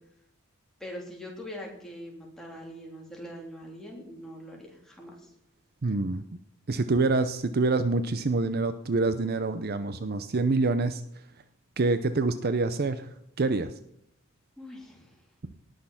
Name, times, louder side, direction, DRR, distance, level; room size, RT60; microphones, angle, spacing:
voice 1, 0.8-5.3 14.6-15.2, equal, ahead, -2 dB, 3.3 m, -42 dB
voice 2, 5.8-6.2 6.7-11.0 11.8-13.1 13.4-13.7, right 3 dB, 50° right, 11 dB, 0.6 m, -26 dB
18.5 x 6.6 x 5.7 m, 0.78 s
head